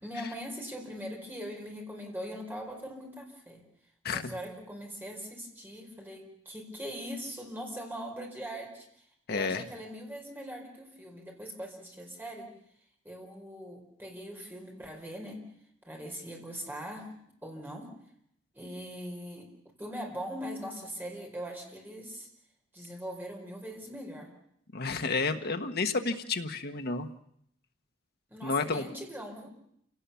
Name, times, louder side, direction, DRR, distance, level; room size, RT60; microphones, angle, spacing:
voice 1, 0.0-3.6 4.1-8.9 9.3-12.5 13.0-15.4 15.8-17.1 17.4-17.9 18.5-19.5 19.8-22.3 22.7-24.3 28.3-29.5, equal, 10° right, 1 dB, 4.9 m, -41 dB
voice 2, 9.3-9.6 24.7-27.1 28.4-28.8, left 4 dB, 55° left, 7 dB, 1.4 m, -30 dB
28.0 x 18.0 x 7.1 m, 0.72 s
head